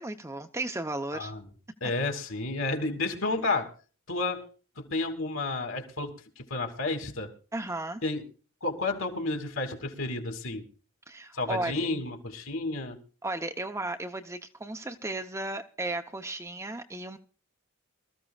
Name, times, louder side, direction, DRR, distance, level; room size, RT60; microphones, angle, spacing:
voice 1, 0.0-1.3 7.5-8.0 11.1-11.7 13.2-17.2, right 2 dB, 15° right, 0.8 m, -34 dB
voice 2, 1.1-1.4 1.8-3.7 4.1-4.5 4.8-7.3 8.0-8.2 8.6-10.7 11.3-13.0, left 3 dB, 65° left, 2.7 m, -31 dB
24.0 x 14.0 x 2.4 m
head